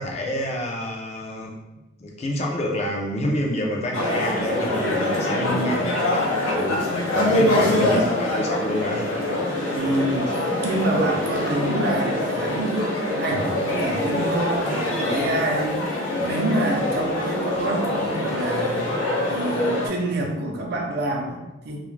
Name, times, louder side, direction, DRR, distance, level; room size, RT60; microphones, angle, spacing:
voice 1, 0.0-1.6 2.0-9.1, left 1 dB, 30° left, 0 dB, 0.4 m, -28 dB
sound 1, 3.9-19.9, left 1 dB, 80° left, 0.6 m, -24 dB
voice 2, 5.4-5.9 7.6-7.9 9.7-10.4 10.6-15.9 16.2-18.8 19.2-21.8, right 2 dB, 50° right, 0 dB, 0.4 m, -27 dB
2.3 x 2.0 x 3.1 m, 1.0 s
head